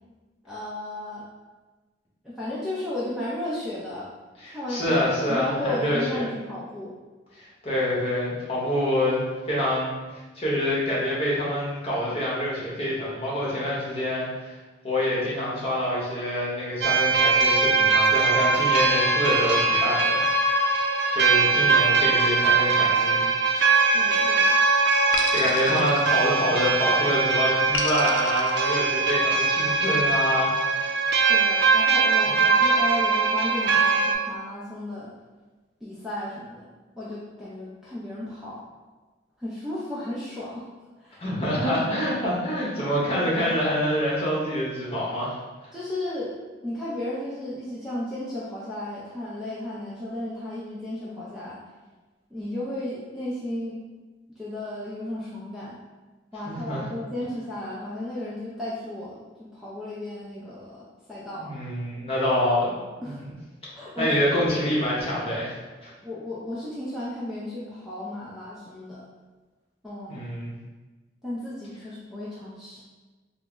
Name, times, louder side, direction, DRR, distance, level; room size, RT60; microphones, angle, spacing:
voice 1, 0.4-1.2 2.2-4.1 4.5-7.0 23.9-24.6 25.4-25.6 31.2-35.1 35.8-36.7 37.0-38.6 39.4-40.7 41.0-41.2 45.7-51.6 52.3-53.8 54.4-55.8 56.3-61.5 63.0-63.2 63.7-64.2 66.0-69.0 69.8-70.2 71.2-72.8, left 1 dB, 5° right, -9 dB, 0.4 m, -34 dB
voice 2, 4.4-6.3 7.3-14.6 14.8-20.5 21.1-23.2 25.3-31.0 32.3-32.4 41.2-45.4 45.6-45.7 56.5-56.8 61.4-62.8 63.0-63.2 64.0-65.6 65.8-65.9 70.1-70.5, left 1 dB, 35° left, -7 dB, 0.9 m, -26 dB
sound 1, 16.8-34.1, right 4 dB, 70° right, 0.4 m, -21 dB
sound 2, 23.5-24.4 25.1-26.8 27.7-29.4, left 3 dB, 75° left, 0.4 m, -33 dB
3.4 x 2.0 x 3.6 m, 1.2 s
head